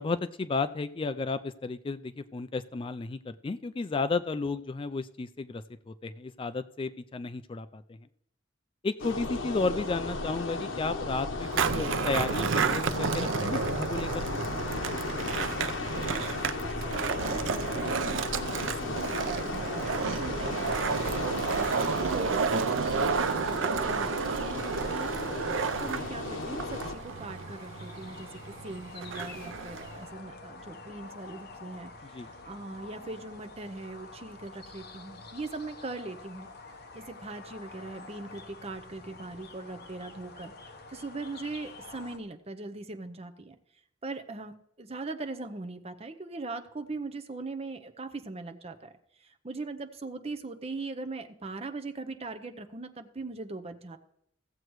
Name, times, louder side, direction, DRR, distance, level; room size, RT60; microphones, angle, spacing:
voice 1, 0.0-8.0 8.8-14.3 32.1-32.3, left 3 dB, 25° left, 12 dB, 0.3 m, -33 dB
sound 1, 9.0-26.9, left 2 dB, 90° left, 1.0 m, -35 dB
Skateboard, 11.4-30.1, right 5 dB, 85° right, 0.5 m, -31 dB
voice 2, 16.1-25.1 25.8-36.5 36.9-43.6 44.0-48.9 49.2-54.0, right 3 dB, 35° right, 7 dB, 0.7 m, -40 dB
sound 2, 22.8-42.2, left 3 dB, 55° left, 1.0 m, -48 dB
16.0 x 7.8 x 3.1 m, 0.74 s
head